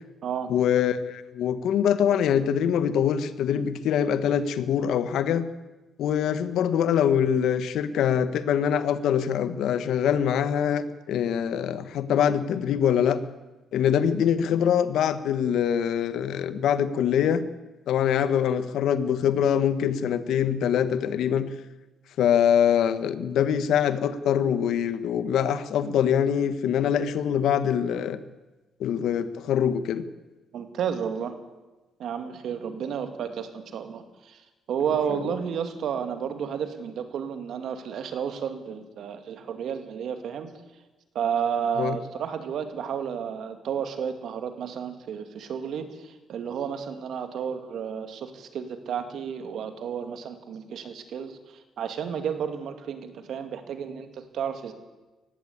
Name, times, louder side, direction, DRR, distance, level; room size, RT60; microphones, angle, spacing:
voice 1, 0.5-5.4 6.0-13.2 13.7-17.4 17.9-21.5 22.2-28.2 28.8-30.0 41.8-42.0, left 8 dB, 80° left, 12 dB, 1.3 m, -24 dB
voice 2, 30.5-31.3 32.0-34.4 34.7-40.5 41.1-54.7, right 7 dB, 70° right, 8 dB, 2.4 m, -32 dB
19.5 x 16.0 x 8.6 m, 1.1 s
cardioid pair, 90°, 0 cm